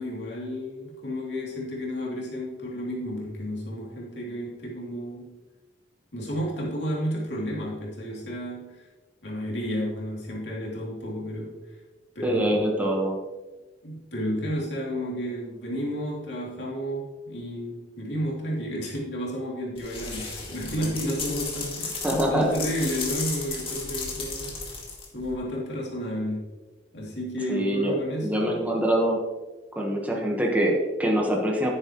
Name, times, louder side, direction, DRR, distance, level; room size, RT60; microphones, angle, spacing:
voice 1, 0.0-5.3 6.1-8.9 9.2-11.8 12.1-12.9 13.8-24.6 25.1-26.5 26.9-28.8, equal, 75° left, -4 dB, 2.9 m, -32 dB
voice 2, 12.2-13.2 22.0-22.5 27.5-27.9 28.2-29.2 29.7-31.7, right 1 dB, 10° right, -1 dB, 1.2 m, -24 dB
sound 1, 19.8-25.3, left 4 dB, 30° left, 2.1 m, -34 dB
11.0 x 9.4 x 3.1 m, 1.2 s
head